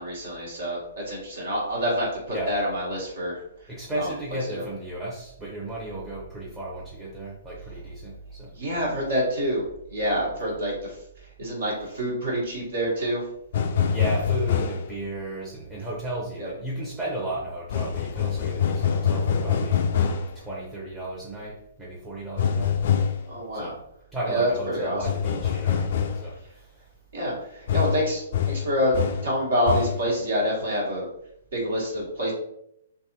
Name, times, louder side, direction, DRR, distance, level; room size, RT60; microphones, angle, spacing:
voice 1, 0.0-3.4 4.0-4.1 4.5-4.6 8.5-13.2 16.4-16.5 23.3-23.7 24.3-25.1 27.1-29.0 29.2-31.1 31.5-32.3, equal, 65° right, -4 dB, 1.3 m, -27 dB
voice 2, 3.7-8.5 13.9-19.9 20.3-22.8 23.5-23.8 24.1-26.8, right 1 dB, 15° right, -6 dB, 0.7 m, -34 dB
sound 1, 13.5-14.9 17.7-20.4 22.4-23.3 25.0-26.3 27.7-29.4 29.7-30.1, left 8 dB, 50° left, 0.3 m, -25 dB
3.3 x 2.7 x 2.8 m, 0.76 s
figure-of-eight pair, 120°, 0 cm